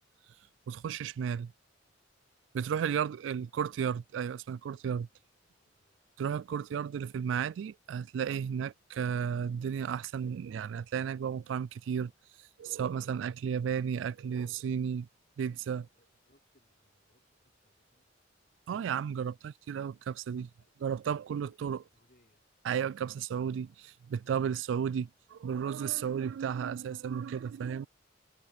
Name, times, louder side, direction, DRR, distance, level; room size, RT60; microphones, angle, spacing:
voice 1, 0.7-1.5 2.5-5.1 6.2-12.1 12.6-15.1 15.4-15.9 18.7-20.5 20.8-21.8 22.6-27.9, right 7 dB, 80° right, 0.3 m, -33 dB
voice 2, 5.6-6.2 15.9-18.1 20.6-21.3 21.7-22.5 27.2-27.9, left 1 dB, 50° left, 4.8 m, -71 dB
head